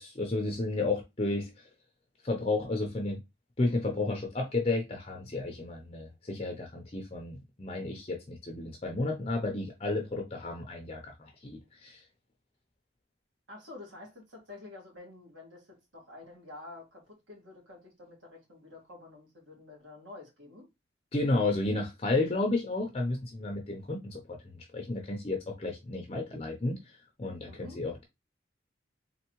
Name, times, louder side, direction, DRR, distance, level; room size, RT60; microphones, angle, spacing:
voice 1, 0.0-1.5 2.2-3.2 3.6-12.0 21.1-24.2 24.5-26.9 27.2-28.0, left 2 dB, 30° left, 0.6 m, -32 dB
voice 2, 13.5-20.7 27.4-27.8, left 2 dB, 90° right, 2.2 m, -49 dB
3.7 x 3.4 x 3.0 m
head